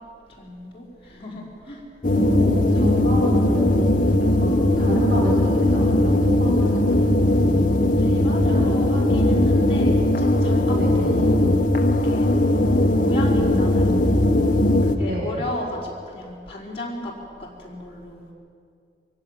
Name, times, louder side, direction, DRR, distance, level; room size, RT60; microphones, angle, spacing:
voice 1, 0.3-1.8 2.1-2.2 2.7-3.0 8.0-11.6 12.0-12.3 13.0-14.1 14.8-17.1 17.4-18.3, left 1 dB, 30° left, -5 dB, 4.8 m, -34 dB
sound 1, 2.0-15.0, left 1 dB, 45° left, 1.3 m, -19 dB
voice 2, 2.1-7.7 8.4-8.8 10.8-11.2 15.1-15.3, right 1 dB, 50° right, -3 dB, 2.8 m, -31 dB
24.0 x 16.5 x 9.2 m, 2.3 s
head